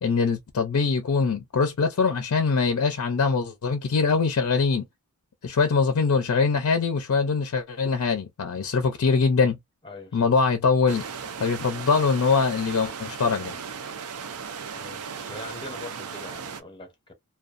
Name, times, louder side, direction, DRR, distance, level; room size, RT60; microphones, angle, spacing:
voice 1, 0.0-4.9 5.4-9.6 10.1-11.0 11.4-13.5, left 4 dB, 70° left, 0.5 m, -23 dB
voice 2, 9.8-10.2 14.7-15.0 15.3-17.1, left 2 dB, 20° left, 0.7 m, -42 dB
sound 1, 10.9-16.6, right 6 dB, 85° right, 0.5 m, -36 dB
2.4 x 2.2 x 2.5 m
head